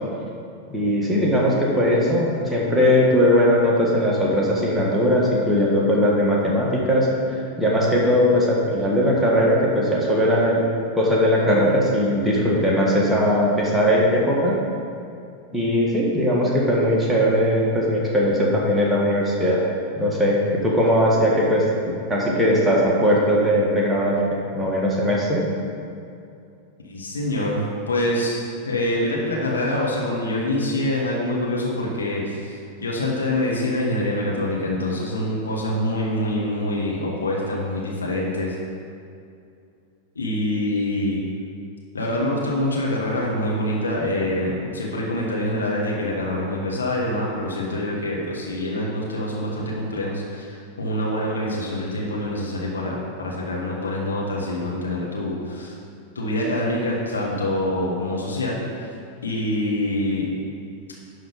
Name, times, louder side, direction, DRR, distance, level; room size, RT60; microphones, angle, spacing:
voice 1, 0.7-7.1 7.6-10.7 10.9-14.6 15.5-19.6 20.0-25.4, equal, 5° right, -5 dB, 1.7 m, -19 dB
voice 2, 26.8-38.5 40.2-41.2 41.9-55.8 56.2-58.9 59.2-60.3, left 1 dB, 75° left, -3 dB, 1.6 m, -25 dB
11.0 x 3.9 x 5.4 m, 2.5 s
figure-of-eight pair, 90°, 0 cm